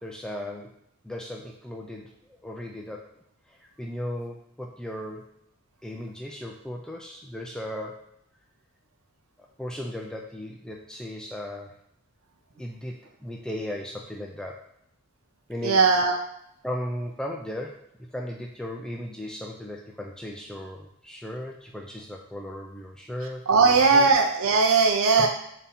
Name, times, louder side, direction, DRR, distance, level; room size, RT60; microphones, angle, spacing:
voice 1, 0.0-0.7 1.0-3.0 3.8-5.3 5.8-8.1 9.6-11.7 12.6-14.6 15.5-15.8 16.6-24.1 25.2-25.3, left 1 dB, 5° left, -1 dB, 0.3 m, -36 dB
voice 2, 15.6-16.2 23.5-25.3, right 4 dB, 70° right, 3 dB, 0.6 m, -19 dB
4.1 x 2.7 x 3.6 m, 0.74 s
head